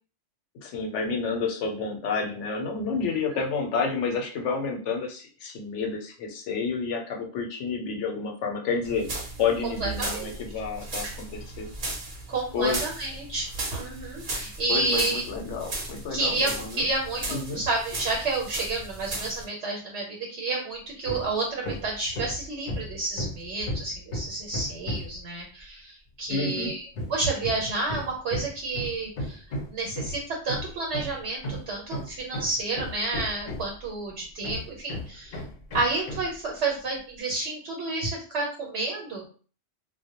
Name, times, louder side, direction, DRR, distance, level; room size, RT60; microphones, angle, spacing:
voice 1, 0.5-9.1 9.4-11.7 12.5-12.8 14.7-16.9 17.3-17.6 26.3-26.8, left 5 dB, 90° left, 2 dB, 0.9 m, -30 dB
sound 1, 8.8-19.4, right 2 dB, 50° right, 0.8 m, -36 dB
voice 2, 9.8-10.4 11.0-11.1 12.3-15.2 16.1-29.4 29.7-35.4 35.7-39.2, right 3 dB, 80° right, -2 dB, 1.0 m, -30 dB
Hammer, 21.0-21.3 21.6-25.2 26.9-33.9 34.4-36.4, left 1 dB, 55° left, 0.6 m, -34 dB
2.1 x 2.0 x 2.8 m, 0.40 s
omnidirectional pair, 1.2 m